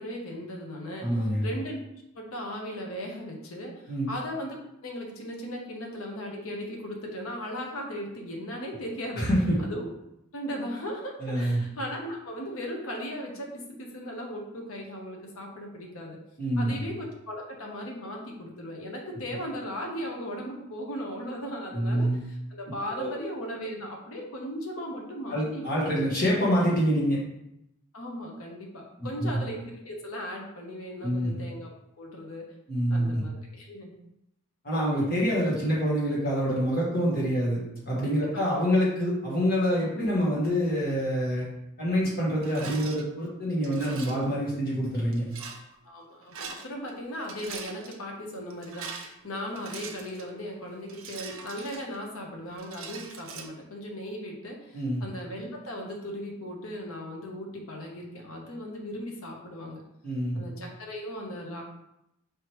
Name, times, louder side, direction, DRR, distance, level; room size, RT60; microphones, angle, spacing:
voice 1, 0.0-1.8 2.1-4.6 4.8-9.3 9.6-9.9 10.3-16.2 16.6-25.7 27.9-31.7 32.0-32.5 32.9-34.0 38.3-38.4 45.4-45.5 45.9-59.8 60.3-61.6, equal, 75° left, 0 dB, 0.9 m, -37 dB
voice 2, 1.0-1.4 3.9-4.1 9.1-9.6 11.2-11.6 16.4-16.7 21.7-22.2 22.9-23.1 25.3-27.2 29.0-29.3 31.0-31.3 32.7-33.2 34.6-37.6 37.8-41.4 41.8-45.2 54.7-55.0 60.0-60.4, equal, 45° left, -6 dB, 1.6 m, -26 dB
Rattle, 42.4-43.0 43.6-44.3 45.1-45.6 46.2-46.9 47.2-48.0 48.5-50.3 50.9-52.2 52.6-53.5, right 5 dB, 65° right, 0.6 m, -42 dB
4.7 x 3.2 x 3.1 m, 0.83 s
head